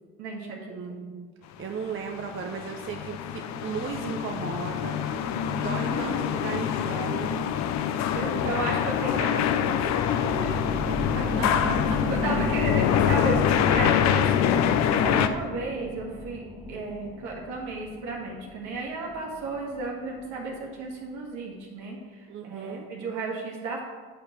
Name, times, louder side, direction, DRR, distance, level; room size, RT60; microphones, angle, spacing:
voice 1, 0.2-0.8 5.7-6.5 8.1-9.8 10.2-10.6 12.1-16.4 16.7-23.8, right 3 dB, 75° right, -1 dB, 1.7 m, -34 dB
voice 2, 0.7-1.3 1.6-5.3 5.6-7.5 11.1-12.0 22.3-22.9, right 5 dB, 45° right, 3 dB, 0.8 m, -36 dB
sound 1, 2.1-15.3, left 9 dB, 65° left, 0.6 m, -25 dB
sound 2, 9.6-20.7 21.1-21.2, left 1 dB, 15° right, 1.9 m, -36 dB
9.2 x 4.9 x 4.3 m, 1.5 s
hypercardioid pair, 50°, 30 cm